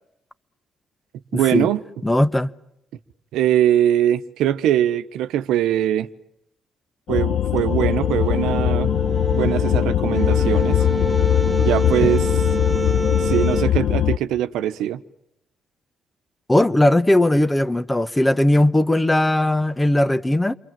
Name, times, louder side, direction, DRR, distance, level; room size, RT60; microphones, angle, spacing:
voice 1, 1.3-1.8 3.3-6.1 7.1-8.9 9.3-10.9 11.6-12.3 13.2-15.0, right 11 dB, 90° right, 1.1 m, -21 dB
voice 2, 2.0-2.5 12.0-12.1 16.5-20.5, left 1 dB, 10° left, 1.0 m, -18 dB
sound 1, 7.1-14.2, left 11 dB, 75° left, 1.1 m, -20 dB
sound 2, 7.6-13.7, right 2 dB, 20° right, 1.0 m, -27 dB
29.0 x 23.5 x 7.6 m
cardioid pair, 90°, 0 cm